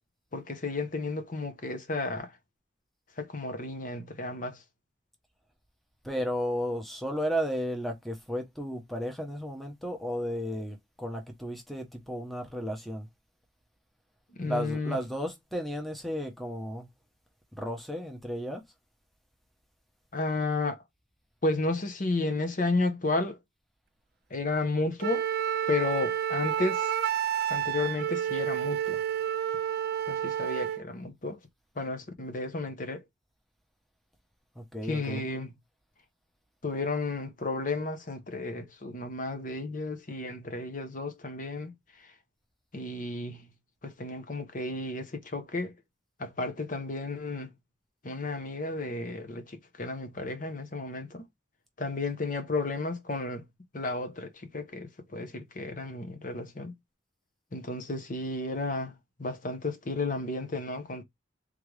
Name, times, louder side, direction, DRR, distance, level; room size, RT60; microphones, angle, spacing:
voice 1, 0.3-2.4 3.2-4.6 14.3-15.0 20.1-20.8 21.4-23.4 24.3-25.3 25.7-26.9 27.5-29.0 30.1-31.4 31.8-33.0 34.8-35.5 36.6-42.1 42.7-43.5 43.8-45.7 46.2-47.5 48.0-51.2 51.8-53.5 53.7-56.7 57.5-61.0, left 2 dB, 45° left, 0.9 m, -33 dB
voice 2, 6.0-13.1 14.4-16.9 17.6-18.6 34.6-35.2, equal, ahead, 0.8 m, -33 dB
Wind instrument woodwind instrument, 25.0-30.8, right 9 dB, 55° right, 0.4 m, -30 dB
3.7 x 3.3 x 3.2 m
head